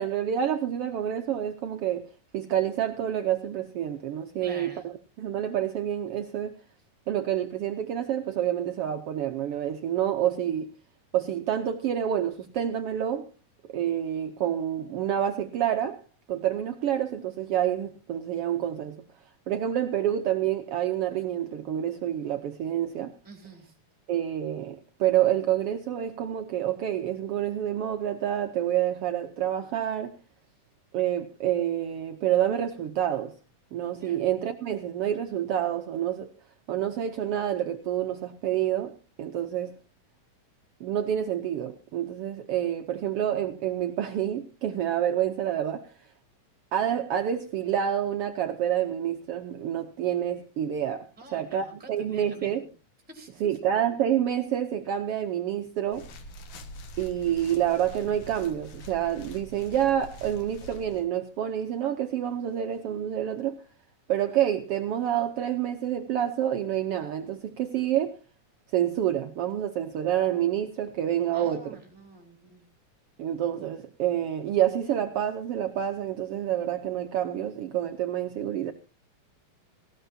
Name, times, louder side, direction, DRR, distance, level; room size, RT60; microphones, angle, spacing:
voice 1, 0.0-2.1 2.3-6.5 7.1-10.7 11.1-13.3 13.7-16.0 16.3-19.0 19.5-23.1 24.1-30.2 30.9-33.3 33.7-36.3 36.7-39.7 40.8-45.9 46.7-52.6 53.4-56.1 57.0-63.6 64.1-68.2 68.7-71.8 73.2-78.7, right 10 dB, 80° right, 1.3 m, -28 dB
voice 2, 4.4-4.9 23.2-23.7 34.0-34.2 51.2-52.7 53.1-53.3 71.3-72.7, right 2 dB, 5° right, 3.5 m, -47 dB
sound 1, 55.9-61.0, right 1 dB, 70° left, 2.8 m, -44 dB
18.5 x 16.0 x 2.7 m
omnidirectional pair, 3.7 m